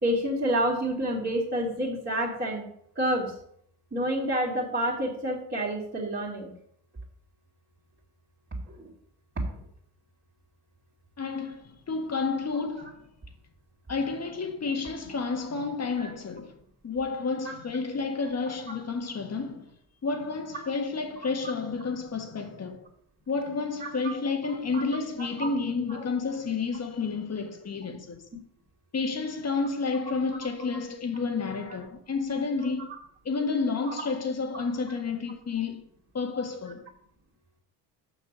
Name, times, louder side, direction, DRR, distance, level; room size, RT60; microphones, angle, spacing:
voice 1, 0.0-2.7 3.0-3.3 3.9-6.5 8.7-8.8 16.0-16.1 23.8-24.1 24.7-24.8 25.4-25.5 25.9-26.0 32.9-33.0, right 1 dB, 25° right, 2.8 m, -28 dB
voice 2, 11.2-13.1 13.9-16.5 16.8-19.7 20.0-22.9 23.3-28.2 28.9-32.9 33.3-35.8 36.1-36.9, left 4 dB, 35° left, 1.8 m, -30 dB
6.6 x 6.1 x 7.5 m
cardioid pair, 90°, 44 cm